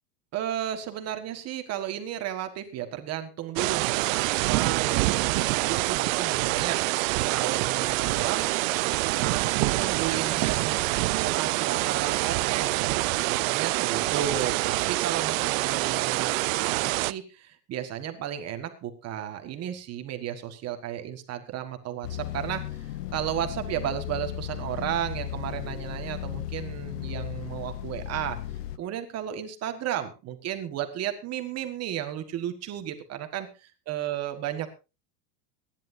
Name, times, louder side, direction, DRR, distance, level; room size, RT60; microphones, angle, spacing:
voice 1, 0.3-8.5 9.2-22.6 23.1-28.4 28.8-34.8, right 11 dB, 30° right, 7 dB, 1.6 m, -34 dB
sound 1, 3.6-17.1, right 21 dB, 55° right, 0.7 m, -26 dB
sound 2, 22.0-28.8, left 12 dB, 80° left, 1.0 m, -35 dB
24.0 x 11.0 x 2.7 m, 0.29 s
supercardioid pair, 150°, 47 cm